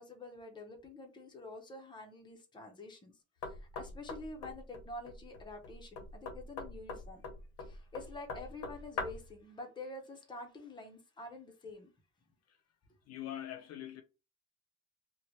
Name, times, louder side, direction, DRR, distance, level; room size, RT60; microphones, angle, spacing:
voice 1, 0.0-7.2 7.6-11.9, left 2 dB, 15° left, 0.6 m, -48 dB
Knock, 3.4-9.3, left 3 dB, 85° left, 0.9 m, -44 dB
voice 2, 13.1-14.0, left 11 dB, 60° left, 0.5 m, -43 dB
2.8 x 2.1 x 3.0 m
cardioid pair, 130°, 29 cm